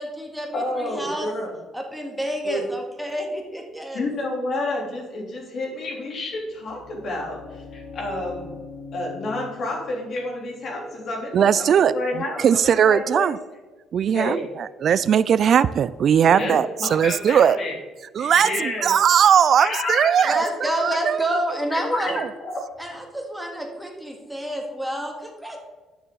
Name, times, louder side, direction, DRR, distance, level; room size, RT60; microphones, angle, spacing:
voice 1, 0.0-1.3 1.7-4.1 20.2-22.2 22.8-25.6, equal, 5° right, 2 dB, 2.0 m, -29 dB
voice 2, 0.5-1.5 2.4-2.6 3.9-8.6 8.9-13.3 14.1-14.4 16.3-17.7 18.2-18.9 19.6-20.3 21.7-22.5, left 2 dB, 55° left, -1 dB, 3.3 m, -30 dB
sound 1, 6.4-12.2, left 4 dB, 80° left, 1.8 m, -43 dB
voice 3, 11.3-11.9 12.4-13.4 13.9-17.6 18.2-20.4 20.8-21.4 22.1-22.3, right 8 dB, 55° right, 17 dB, 0.3 m, -19 dB
11.5 x 6.8 x 3.9 m, 1.2 s
cardioid pair, 90°, 0 cm